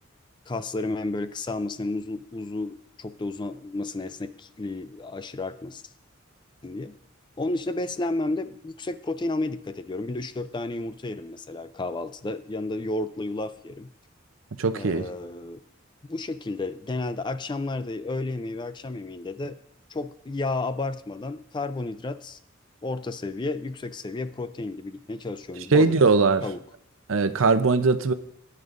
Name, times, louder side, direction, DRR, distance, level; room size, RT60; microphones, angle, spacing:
voice 1, 0.5-5.8 6.6-7.0 7.4-13.9 14.7-15.6 16.1-19.6 19.9-22.4 22.8-25.9 26.4-26.6, left 2 dB, 25° left, 12 dB, 0.4 m, -32 dB
voice 2, 14.6-15.1 25.7-26.4 27.1-28.1, right 4 dB, 75° right, 11 dB, 0.6 m, -20 dB
18.5 x 9.5 x 2.5 m, 0.72 s
head